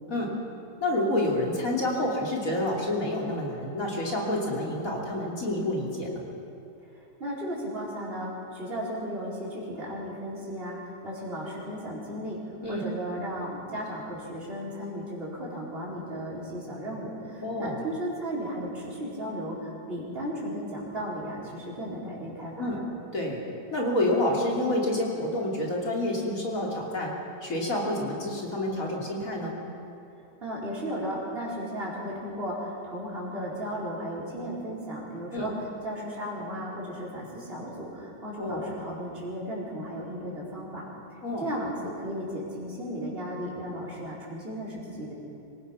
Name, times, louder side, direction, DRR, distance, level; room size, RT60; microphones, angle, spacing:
voice 1, 0.8-6.2 12.6-12.8 17.4-17.8 22.6-22.8 23.1-23.4 23.7-27.1 27.4-29.5 35.3-35.5 38.4-38.7 41.2-41.5, left 1 dB, 50° left, -2 dB, 3.4 m, -28 dB
voice 2, 6.9-22.8 30.4-35.5 35.8-40.8 41.1-45.2, equal, 30° right, -5 dB, 4.7 m, -35 dB
25.5 x 17.5 x 5.8 m, 2.7 s
omnidirectional pair, 1.9 m